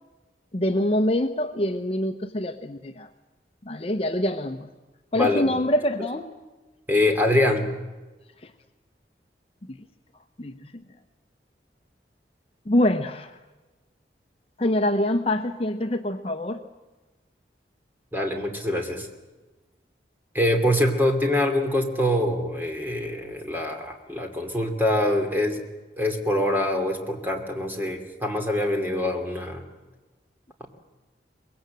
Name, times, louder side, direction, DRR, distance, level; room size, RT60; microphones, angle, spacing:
voice 1, 0.5-3.1 3.7-4.7 5.1-6.3 8.4-8.5 10.4-10.7 12.7-13.3 14.6-16.6, left 1 dB, 35° left, 6 dB, 0.9 m, -25 dB
voice 2, 5.1-5.6 6.9-7.7 18.1-19.1 20.3-25.6 26.0-29.6 30.6-30.7, left 1 dB, 10° right, 4 dB, 2.7 m, -24 dB
24.0 x 21.5 x 7.7 m, 1.2 s
head